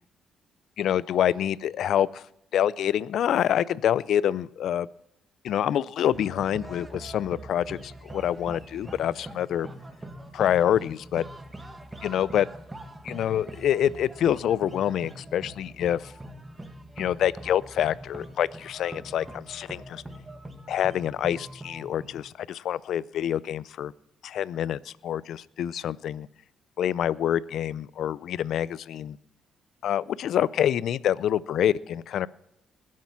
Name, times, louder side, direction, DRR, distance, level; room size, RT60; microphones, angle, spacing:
voice 1, 0.8-2.2 2.5-4.9 5.4-9.7 10.3-11.2 12.0-12.5 13.0-16.1 17.0-20.0 20.7-23.9 24.2-26.3 26.8-29.2 29.8-32.3, left 10 dB, 70° left, 21 dB, 0.4 m, -26 dB
sound 1, 6.1-22.2, right 1 dB, 15° right, 1.5 m, -43 dB
20.5 x 7.5 x 5.9 m, 0.78 s
cardioid pair, 90°, 0 cm